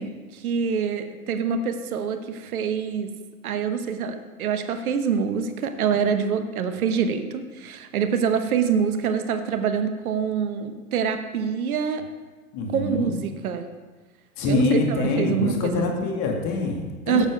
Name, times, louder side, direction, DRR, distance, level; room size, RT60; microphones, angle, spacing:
voice 1, 0.0-3.1 3.4-12.0 12.7-13.7 14.5-15.8 17.1-17.3, right 7 dB, 75° right, 8 dB, 1.0 m, -25 dB
voice 2, 12.5-13.1 14.4-17.3, left 3 dB, 40° left, 1 dB, 2.0 m, -25 dB
8.9 x 7.6 x 5.1 m, 1.3 s
hypercardioid pair, 105°, 43 cm